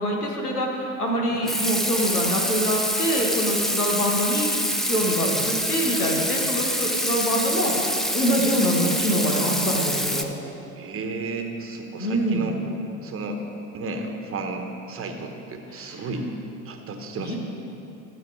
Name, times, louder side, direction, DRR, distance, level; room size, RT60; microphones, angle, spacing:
voice 1, 0.0-10.3 12.0-12.4 15.7-16.1 17.2-17.4, equal, 85° left, 0 dB, 1.6 m, -25 dB
Water tap faucet / Sink (filling or washing), 1.5-10.2, equal, ahead, 0.5 m, -26 dB
voice 2, 10.8-12.6 13.0-13.4 13.7-16.3 16.6-17.4, right 3 dB, 30° right, 4 dB, 1.3 m, -33 dB
13.5 x 8.7 x 4.9 m, 2.9 s
figure-of-eight pair, 70°, 44 cm